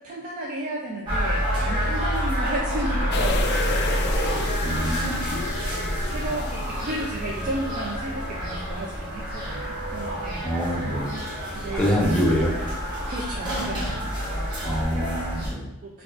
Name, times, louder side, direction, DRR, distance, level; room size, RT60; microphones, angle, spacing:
voice 1, 0.0-5.0 5.6-10.6 11.5-12.5 13.1-14.1 14.4-14.9 15.8-16.0, right 1 dB, 40° right, -3 dB, 0.4 m, -34 dB
sound 1, 1.0-15.5, equal, 20° right, 1.1 m, -28 dB
sound 2, 3.1-7.9 8.3-8.4, left 3 dB, 50° left, 0.3 m, -32 dB
voice 2, 4.6-5.4 10.4-11.2 11.7-12.5 14.6-15.7, equal, 5° left, -4 dB, 0.7 m, -25 dB
4.6 x 2.3 x 2.4 m, 1.0 s
head